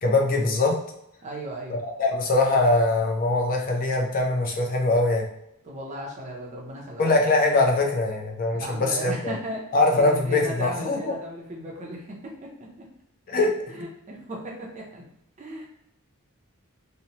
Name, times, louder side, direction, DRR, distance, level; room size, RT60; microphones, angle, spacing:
voice 1, 0.0-0.8 1.7-5.2 7.0-9.3 9.7-11.0 13.3-13.5, left 2 dB, 40° left, 1 dB, 0.5 m, -22 dB
voice 2, 1.2-1.8 5.6-7.1 8.5-12.5 13.7-15.0 15.4-15.7, equal, 30° right, -2 dB, 0.5 m, -36 dB
2.8 x 2.0 x 2.8 m, 0.79 s
head